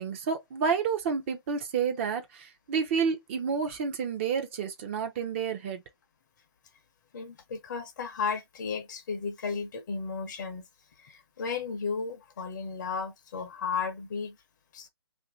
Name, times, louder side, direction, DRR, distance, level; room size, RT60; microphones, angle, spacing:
voice 1, 0.0-5.8, right 6 dB, 30° right, 0.6 m, -30 dB
voice 2, 7.1-10.7 11.0-14.4 14.7-14.9, left 5 dB, 45° left, 0.7 m, -34 dB
2.6 x 2.6 x 3.5 m
hypercardioid pair, 150°, 14 cm